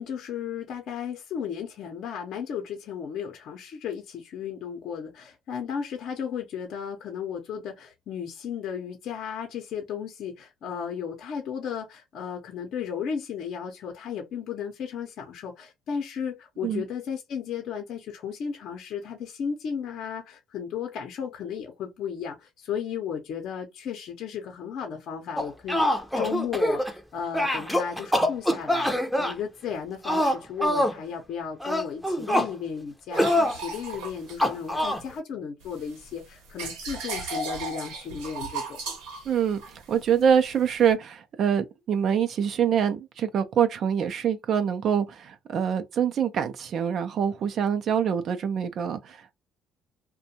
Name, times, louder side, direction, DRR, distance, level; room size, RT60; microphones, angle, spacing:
voice 1, 0.0-26.8 27.1-38.8, left 7 dB, 65° left, 0.7 m, -34 dB
sound 1, 25.4-27.0 27.3-29.3 30.0-31.0 31.6-32.5 33.2-33.6 34.4-35.0, left 1 dB, ahead, 0.6 m, -24 dB
sound 2, 33.1-35.2 35.6-40.9, right 3 dB, 90° right, 0.9 m, -37 dB
voice 2, 39.3-49.3, right 8 dB, 55° right, 0.5 m, -25 dB
2.5 x 2.2 x 2.8 m
supercardioid pair, 85°, 0 cm